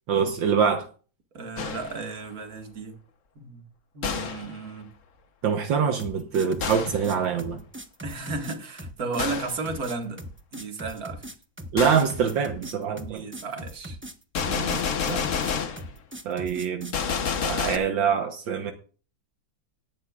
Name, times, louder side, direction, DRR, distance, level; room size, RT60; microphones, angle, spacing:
voice 1, 0.1-0.9 5.4-7.6 11.7-13.2 14.5-15.2 16.3-16.9 17.4-18.7, right 7 dB, 75° right, 5 dB, 1.8 m, -25 dB
voice 2, 1.3-3.0 3.4-3.7 3.9-4.9 8.0-10.2 10.5-11.2 13.0-14.0, right 3 dB, 50° right, 4 dB, 2.3 m, -34 dB
Gunshot gunfire, 1.6-2.1 4.0-4.6 6.6-7.1 9.2-9.6 11.8-12.1 14.3-15.9 16.9-17.8, left 6 dB, 45° left, 1.2 m, -29 dB
sound 1, 6.0-17.0, equal, 10° right, 0.6 m, -40 dB
18.0 x 11.0 x 2.5 m, 0.38 s
omnidirectional pair, 2.1 m